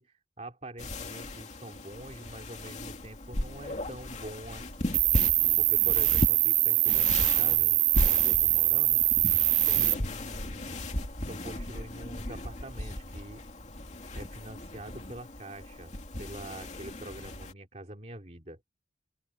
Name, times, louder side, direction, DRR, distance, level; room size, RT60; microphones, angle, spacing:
voice 1, 0.0-5.0 5.6-9.0 9.6-10.7 11.3-13.4 13.9-15.9 16.2-18.6, right 1 dB, 40° right, 2.9 m, -45 dB
sound 1, 0.8-17.5, left 1 dB, 40° left, 2.7 m, -36 dB
Cricket, 4.9-9.9, right 19 dB, 85° right, 0.4 m, -24 dB
open air
head